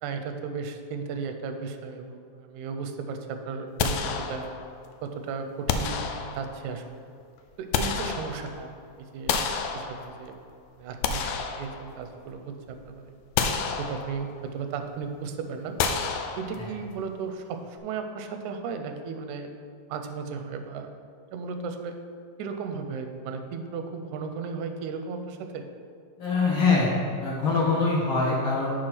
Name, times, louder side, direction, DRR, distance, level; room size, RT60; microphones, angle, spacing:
voice 1, 0.0-4.5 5.0-6.1 6.4-7.0 7.6-10.4 10.8-13.1 13.8-15.8 16.4-19.5 19.9-20.9 21.3-22.0 22.4-25.7, right 5 dB, 90° right, 6 dB, 2.0 m, -35 dB
sound 1, 3.8-4.8 5.7-6.7 7.4-8.7 9.3-10.4 10.8-12.3 12.7-12.8 13.4-14.4 15.8-16.9, left 6 dB, 85° left, 1.4 m, -30 dB
voice 2, 26.2-26.9 27.2-28.7, left 4 dB, 55° left, -5 dB, 1.8 m, -23 dB
7.7 x 4.3 x 5.9 m, 2.2 s
omnidirectional pair, 3.3 m